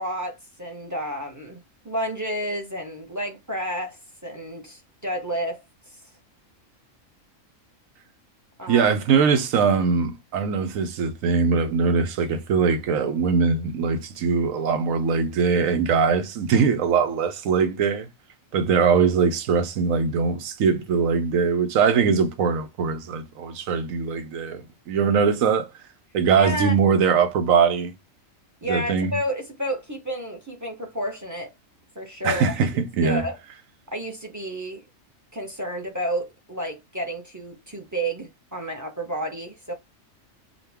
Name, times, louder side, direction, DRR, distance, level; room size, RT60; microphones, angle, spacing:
voice 1, 0.0-5.6 8.6-8.9 26.4-26.8 28.6-31.5 31.9-32.4 33.0-33.4 33.9-34.8 35.3-39.7, equal, 15° right, 0.8 m, -31 dB
voice 2, 8.7-18.1 18.5-25.7 26.1-27.9 28.6-29.2 32.2-33.2, right 5 dB, 85° right, 1.1 m, -21 dB
5.0 x 2.4 x 3.4 m
omnidirectional pair, 1.4 m